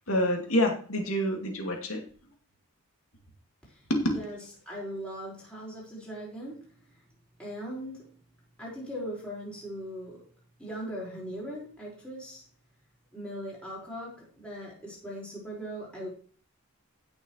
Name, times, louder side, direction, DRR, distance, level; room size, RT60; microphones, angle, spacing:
voice 1, 0.1-2.0 3.9-4.0, equal, 70° left, 1 dB, 2.5 m, -27 dB
voice 2, 4.6-6.7 7.4-8.1 8.6-10.2 10.6-12.4 13.1-16.1, equal, 5° left, -6 dB, 4.9 m, -39 dB
16.0 x 6.5 x 3.2 m, 0.43 s
head